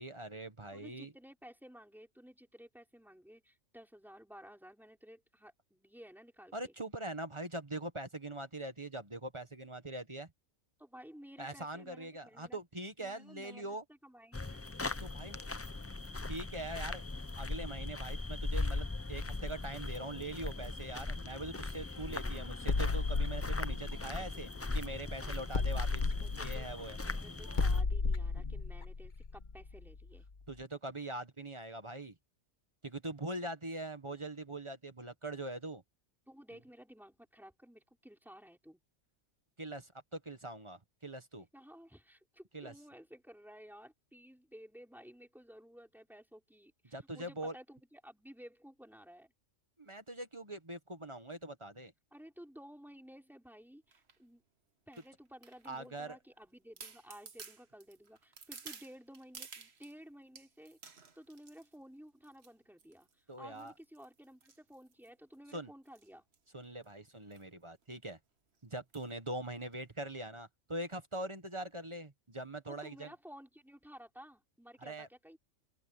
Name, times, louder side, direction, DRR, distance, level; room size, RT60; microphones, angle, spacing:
voice 1, 0.0-1.1 6.5-10.3 11.4-13.8 15.0-15.4 16.3-17.0 17.4-26.0 26.4-27.0 30.5-32.1 32.8-35.8 39.6-41.5 42.5-42.7 46.9-47.5 49.8-51.9 55.6-56.2 63.3-63.7 65.5-65.7 66.5-68.2 68.6-73.1 74.8-75.1, right 1 dB, 25° right, 1.4 m, -42 dB
voice 2, 0.7-6.8 10.8-12.6 13.0-14.7 25.0-25.8 26.2-26.7 27.0-30.3 36.3-38.8 41.5-49.3 52.1-54.4 54.9-66.2 72.7-75.4, equal, ahead, 4.9 m, -55 dB
sound 1, 14.3-27.8, left 3 dB, 25° left, 0.3 m, -39 dB
sound 2, 22.7-25.0 25.5-30.2, left 4 dB, 40° left, 1.2 m, -34 dB
sound 3, 53.9-54.2 54.9-56.0 56.4-56.5 56.8-60.0 60.4-61.8 62.2-62.5 62.8-63.1 63.6-65.4 65.9-66.1 66.3-66.4 66.6-66.9 67.3-67.5 67.8-67.9 68.9-69.2 69.7-69.8, right 5 dB, 55° right, 1.6 m, -53 dB
open air
omnidirectional pair, 1.3 m